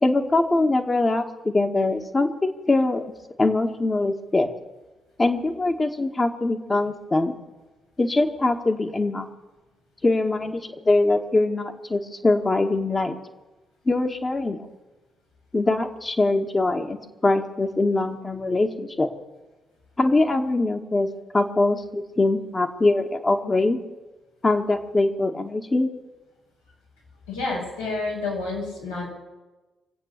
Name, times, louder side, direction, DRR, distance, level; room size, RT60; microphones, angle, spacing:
voice 1, 0.0-3.0 3.4-4.5 5.2-7.3 8.0-9.3 10.0-13.2 13.9-14.7 15.5-17.0 17.2-19.1 20.0-21.1 21.3-23.8 24.4-25.9, left 2 dB, 30° left, 3 dB, 1.9 m, -22 dB
voice 2, 27.3-29.1, left 3 dB, 90° left, -7 dB, 6.3 m, -29 dB
25.0 x 8.5 x 6.9 m, 1.1 s
hypercardioid pair, 40°, 0 cm